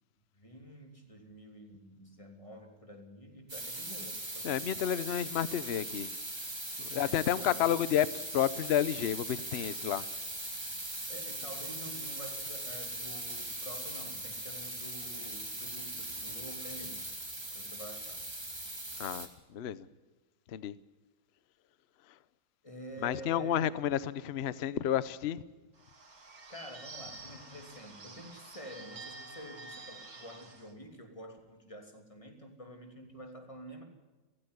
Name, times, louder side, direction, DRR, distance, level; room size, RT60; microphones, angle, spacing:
voice 1, 0.4-4.7 6.9-7.8 11.1-17.1 17.5-18.3 22.6-23.7 26.5-33.8, equal, 15° left, 3.0 m, -48 dB
sound 1, 3.5-19.3, right 1 dB, 15° right, 2.7 m, -40 dB
voice 2, 4.4-6.1 6.8-10.0 19.0-19.9 20.5-20.7 23.0-25.4, left 10 dB, 55° left, 0.8 m, -31 dB
Bird / Bell, 25.8-30.7, right 3 dB, 55° right, 3.0 m, -49 dB
17.5 x 15.5 x 9.7 m
omnidirectional pair, 1.9 m